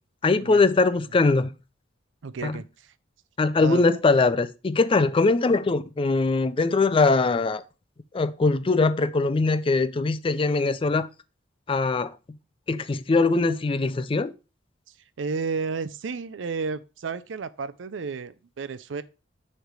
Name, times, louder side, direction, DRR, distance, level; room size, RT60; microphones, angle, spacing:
voice 1, 0.2-1.5 2.4-2.5 3.4-7.6 8.1-11.1 11.7-12.1 12.7-14.3, left 3 dB, 30° left, 0.4 m, -21 dB
voice 2, 2.2-2.9 3.6-3.8 15.2-19.0, right 5 dB, 90° right, 0.5 m, -32 dB
6.5 x 3.3 x 4.7 m
head